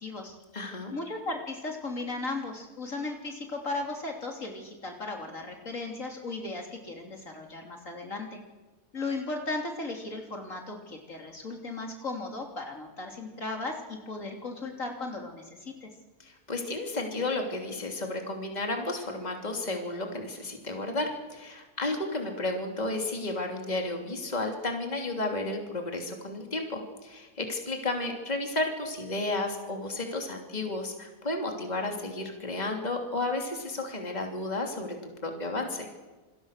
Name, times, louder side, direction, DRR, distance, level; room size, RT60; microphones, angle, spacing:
voice 1, 0.0-0.3 0.9-8.4 8.9-15.9, left 2 dB, 55° left, 2 dB, 3.5 m, -36 dB
voice 2, 0.5-0.9 16.2-35.9, left 2 dB, 25° left, 2 dB, 3.1 m, -32 dB
28.0 x 21.0 x 6.6 m, 1.2 s
omnidirectional pair, 1.6 m